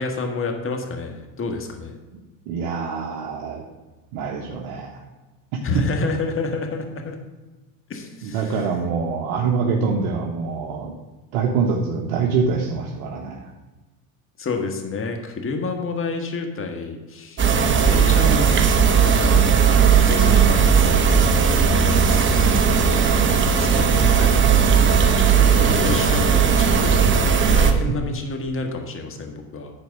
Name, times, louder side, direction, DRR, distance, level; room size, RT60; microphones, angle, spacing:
voice 1, 0.0-2.0 5.6-7.2 7.9-8.9 14.4-17.5 17.9-18.6 19.0-21.3 21.9-29.7, left 3 dB, 30° left, 4 dB, 1.7 m, -30 dB
voice 2, 2.5-3.6 4.1-5.0 8.2-10.9 11.3-13.5, right 5 dB, 65° right, -1 dB, 1.4 m, -25 dB
sound 1, 17.4-27.7, right 6 dB, 25° right, 1.0 m, -17 dB
9.5 x 4.6 x 6.5 m, 1.2 s
supercardioid pair, 105°, 45 cm